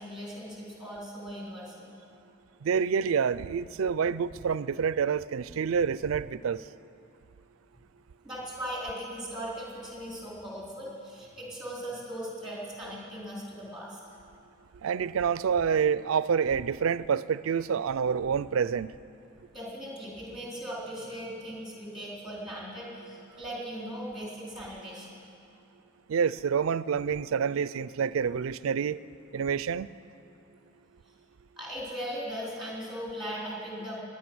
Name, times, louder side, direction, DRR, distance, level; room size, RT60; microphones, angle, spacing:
voice 1, 0.0-1.9 8.2-14.0 19.5-25.2 31.6-34.0, equal, ahead, -5 dB, 3.6 m, -38 dB
voice 2, 2.6-6.6 14.8-18.9 26.1-29.0 29.3-29.9, right 6 dB, 85° right, 17 dB, 0.4 m, -27 dB
21.0 x 9.7 x 6.2 m, 2.7 s
head